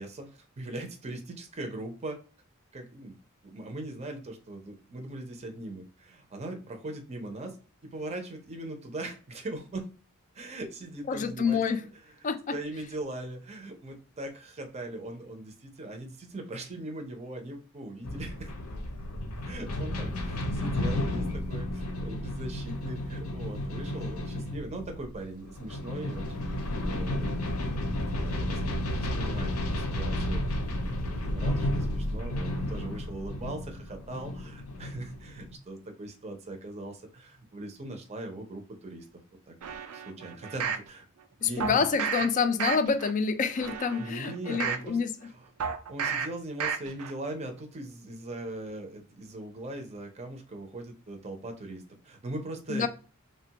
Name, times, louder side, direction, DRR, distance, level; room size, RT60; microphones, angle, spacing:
voice 1, 0.0-2.2 2.7-3.2 3.4-7.6 7.8-9.9 10.3-11.6 12.2-18.5 19.4-26.6 26.8-27.8 28.1-39.1 39.5-39.6 39.9-41.1 41.4-41.9 42.2-42.3 44.0-45.0 45.2-45.5 45.9-52.9, right 2 dB, 30° right, 0.5 m, -40 dB
voice 2, 11.1-11.8 12.2-12.5 41.4-45.1 52.7-52.9, left 5 dB, 35° left, 0.3 m, -27 dB
sound 1, 18.0-35.6, left 1 dB, 75° left, 0.6 m, -32 dB
sound 2, 39.6-40.9 41.6-42.3 42.6-43.1 43.5-44.9 45.6-46.3 46.6-47.1 47.5-47.6, right 6 dB, 85° right, 0.4 m, -32 dB
3.2 x 2.2 x 2.7 m
head